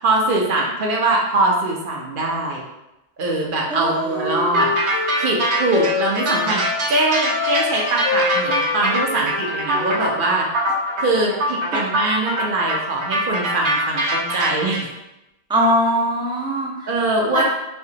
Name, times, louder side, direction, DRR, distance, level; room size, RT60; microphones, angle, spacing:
voice 1, 0.0-2.6 3.2-6.6 6.9-10.5 11.0-14.9 16.9-17.4, right 2 dB, 55° right, -1 dB, 0.7 m, -22 dB
Wind instrument woodwind instrument, 3.7-6.8 7.3-10.5, left 4 dB, 70° left, 0.8 m, -27 dB
voice 2, 3.7-4.4 15.5-16.9 17.3-17.4, right 1 dB, 10° right, -3 dB, 0.3 m, -21 dB
sound 1, 4.5-14.8, right 1 dB, 75° right, 1.0 m, -23 dB
3.3 x 2.9 x 2.7 m, 0.92 s
omnidirectional pair, 1.2 m